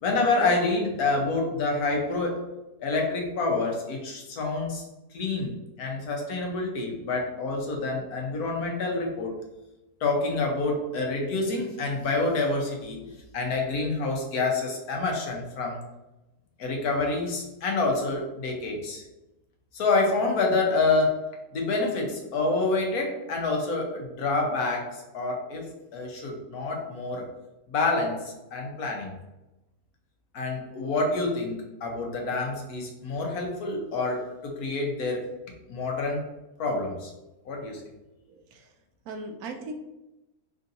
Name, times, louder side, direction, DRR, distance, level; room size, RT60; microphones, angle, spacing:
voice 1, 0.0-2.4 2.8-4.8 5.1-9.3 10.0-15.8 16.6-19.0 19.7-21.2 21.5-27.3 27.7-29.1 30.3-35.3 35.7-36.2 36.6-37.1 37.4-37.8, left 3 dB, 80° left, 1 dB, 1.3 m, -27 dB
voice 2, 38.3-38.7 39.0-39.7, right 2 dB, 80° right, 4 dB, 1.1 m, -38 dB
3.6 x 2.6 x 3.9 m, 0.99 s
omnidirectional pair, 1.6 m